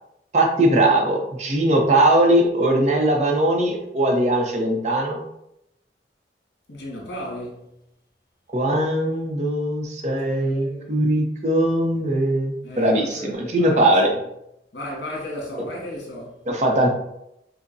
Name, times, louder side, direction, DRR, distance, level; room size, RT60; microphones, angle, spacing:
voice 1, 0.3-5.2 8.5-14.1 16.5-16.9, right 1 dB, 40° right, 0.6 m, -20 dB
voice 2, 6.7-7.8 10.3-11.0 12.6-13.8 14.1-14.2 14.7-16.5, left 1 dB, 75° left, 1.5 m, -35 dB
5.2 x 2.1 x 2.6 m
head